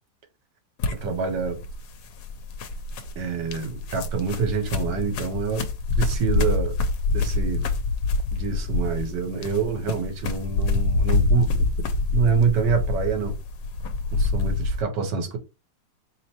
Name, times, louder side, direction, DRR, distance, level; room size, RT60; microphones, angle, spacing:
sound 1, 0.8-14.8, left 3 dB, 80° left, 1.3 m, -26 dB
voice 1, 0.9-1.6 3.2-5.7 6.0-6.8 7.1-7.7 8.3-11.7 12.1-13.4 14.1-15.4, right 5 dB, 75° right, 1.5 m, -26 dB
4.3 x 3.4 x 2.8 m
omnidirectional pair, 1.9 m